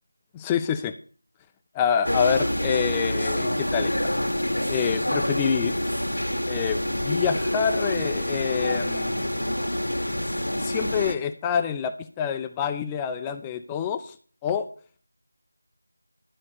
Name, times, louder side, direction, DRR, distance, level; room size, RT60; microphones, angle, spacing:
voice 1, 0.3-0.9 1.7-3.9 4.7-5.7 6.5-9.3 10.6-14.2 14.4-14.7, left 8 dB, 10° left, 9 dB, 0.5 m, -27 dB
sound 1, 2.0-11.1, left 1 dB, 75° left, 1.8 m, -27 dB
12.0 x 5.3 x 6.6 m, 0.41 s
figure-of-eight pair, 165°, 0 cm